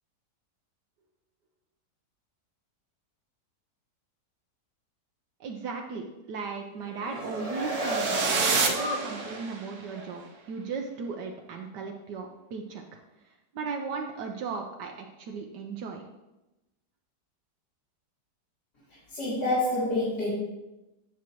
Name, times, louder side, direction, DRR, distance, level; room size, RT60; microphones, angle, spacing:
voice 1, 5.4-10.2 10.5-13.0 13.5-16.0, right 5 dB, 75° right, 2 dB, 1.3 m, -36 dB
sound 1, 6.8-9.5 9.9-10.1, right 1 dB, 25° right, 0.9 m, -33 dB
sound 2, 7.6-9.7, right 4 dB, 55° right, 1.1 m, -29 dB
voice 2, 19.1-20.3, left 2 dB, 70° left, -10 dB, 3.2 m, -27 dB
9.4 x 7.0 x 3.0 m, 0.99 s
omnidirectional pair, 1.9 m